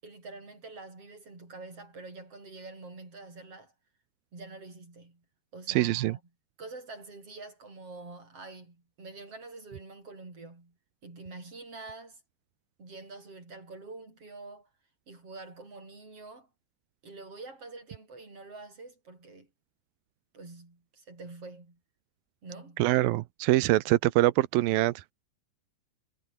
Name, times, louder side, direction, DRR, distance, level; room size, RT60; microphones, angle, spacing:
voice 1, 0.0-3.7 4.3-5.2 5.5-6.2 6.6-10.7 11.0-12.2 12.8-14.7 15.1-16.5 17.0-19.5 20.3-21.8 22.4-22.8, right 3 dB, 30° right, 8.2 m, -46 dB
voice 2, 5.7-6.2 22.8-25.1, right 17 dB, 80° right, 2.1 m, -24 dB
omnidirectional pair, 5.1 m